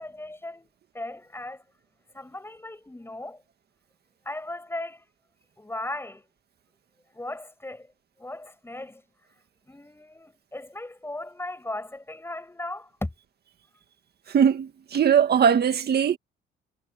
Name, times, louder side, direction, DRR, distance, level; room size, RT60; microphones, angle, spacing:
voice 1, 0.0-1.6 2.1-3.4 4.3-5.0 5.6-6.2 7.1-7.9 8.2-9.0 9.7-13.1, left 2 dB, 10° left, 7.1 m, -37 dB
voice 2, 14.3-16.2, right 8 dB, 55° right, 1.9 m, -20 dB
cardioid pair, 90°, 20 cm